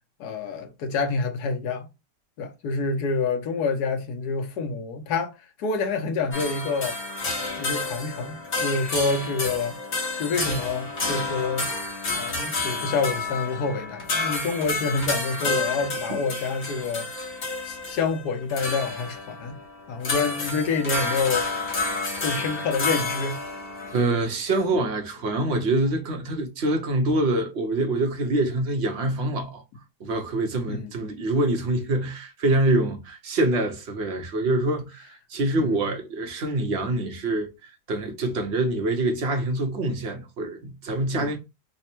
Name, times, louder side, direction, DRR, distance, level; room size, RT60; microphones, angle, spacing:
voice 1, 0.2-1.9 2.4-5.3 5.6-7.0 7.6-9.8 10.2-11.7 12.1-17.1 17.6-19.6 19.9-21.5 22.2-23.4 30.7-30.9 35.6-35.9 41.1-41.3, left 4 dB, 75° left, 1.2 m, -27 dB
sound 1, 6.3-24.0, left 3 dB, 40° left, 1.1 m, -30 dB
voice 2, 23.9-29.6 30.0-41.4, right 2 dB, 55° right, 0.8 m, -25 dB
3.3 x 2.1 x 4.3 m
omnidirectional pair, 1.8 m